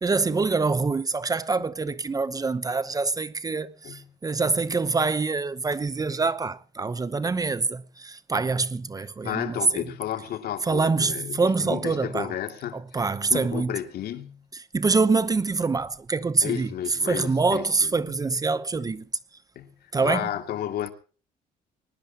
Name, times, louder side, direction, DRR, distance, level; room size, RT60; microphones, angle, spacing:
voice 1, 0.0-9.9 10.6-12.3 12.7-13.8 14.5-19.0 19.9-20.3, right 4 dB, 20° right, 0.8 m, -25 dB
voice 2, 9.2-13.0 13.3-14.5 16.4-18.1 18.7-18.9 19.6-20.9, left 11 dB, 65° left, 2.5 m, -33 dB
22.0 x 19.5 x 2.9 m
cardioid pair, 110°, 17 cm